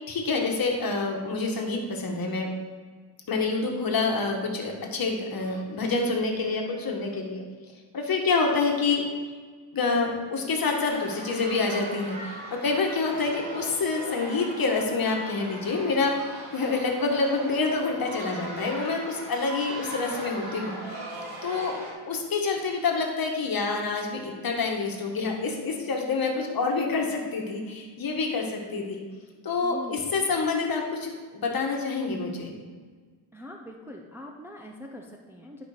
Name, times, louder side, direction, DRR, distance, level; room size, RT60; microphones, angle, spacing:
voice 1, 0.1-2.5 3.3-7.4 7.9-9.0 9.7-16.1 16.5-20.8 21.4-21.8 22.1-29.0 29.4-32.6, left 4 dB, 45° left, 1 dB, 1.7 m, -27 dB
sound 1, 10.9-21.9, right 1 dB, 45° right, 3.1 m, -39 dB
voice 2, 29.6-30.0 33.3-35.6, left 1 dB, 5° right, 0 dB, 0.7 m, -42 dB
11.5 x 5.3 x 5.0 m, 1.5 s
cardioid pair, 115°, 50 cm